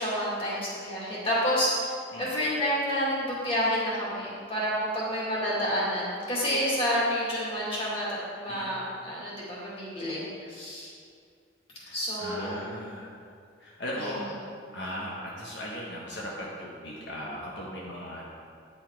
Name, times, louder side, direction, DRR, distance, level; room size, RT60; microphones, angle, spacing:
voice 1, 0.0-1.9 2.2-10.9 11.9-12.6 14.0-14.1, equal, 30° left, -7 dB, 2.4 m, -29 dB
voice 2, 11.8-13.1 13.6-14.3 14.7-18.2, equal, 65° left, -5 dB, 1.2 m, -37 dB
10.0 x 5.7 x 4.6 m, 2.3 s
head